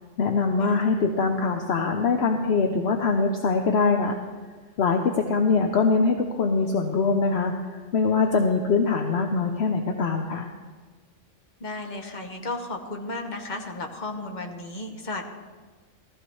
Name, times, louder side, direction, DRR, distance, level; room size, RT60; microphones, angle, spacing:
voice 1, 0.2-4.2 4.8-10.5, left 4 dB, 60° left, 4 dB, 1.0 m, -23 dB
voice 2, 11.6-15.2, left 2 dB, 40° left, 3 dB, 1.3 m, -34 dB
15.0 x 14.5 x 3.1 m, 1.4 s
omnidirectional pair, 1.3 m